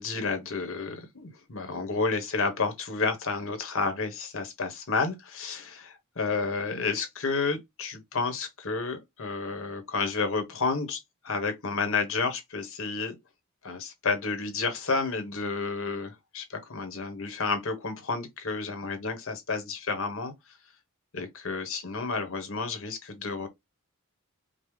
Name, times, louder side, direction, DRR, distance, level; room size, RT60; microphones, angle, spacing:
voice 1, 0.0-11.0 11.2-13.1 13.6-20.3 21.1-23.5, left 4 dB, 65° left, 1.3 m, -31 dB
5.3 x 2.3 x 3.3 m
head